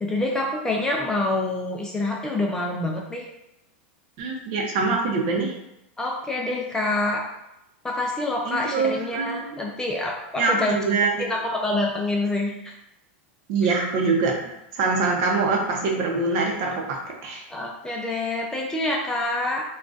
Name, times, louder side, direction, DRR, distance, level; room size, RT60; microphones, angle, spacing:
voice 1, 0.0-3.3 6.0-7.3 7.8-10.8 11.2-12.7 13.6-13.7 17.5-19.6, left 2 dB, 10° left, -1 dB, 0.4 m, -26 dB
voice 2, 4.2-5.5 8.4-9.5 10.4-11.3 13.5-17.0 17.2-17.4, right 4 dB, 50° right, 0 dB, 0.7 m, -24 dB
3.7 x 2.3 x 2.5 m, 0.86 s
supercardioid pair, 140°, 6 cm